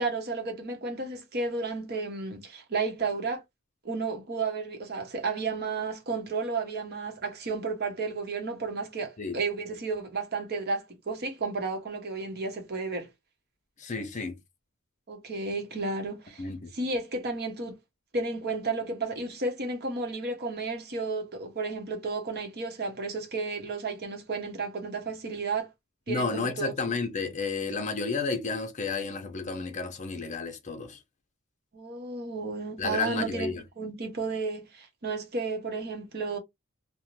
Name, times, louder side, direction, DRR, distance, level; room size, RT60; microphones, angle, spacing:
voice 1, 0.0-3.4 3.8-13.1 15.1-16.4 16.7-17.8 18.1-25.7 26.1-26.9 31.7-36.4, right 3 dB, 50° right, 0.8 m, -32 dB
voice 2, 13.8-14.4 16.4-16.7 26.1-31.0 32.8-33.6, left 4 dB, 35° left, 0.6 m, -31 dB
2.5 x 2.1 x 3.0 m
head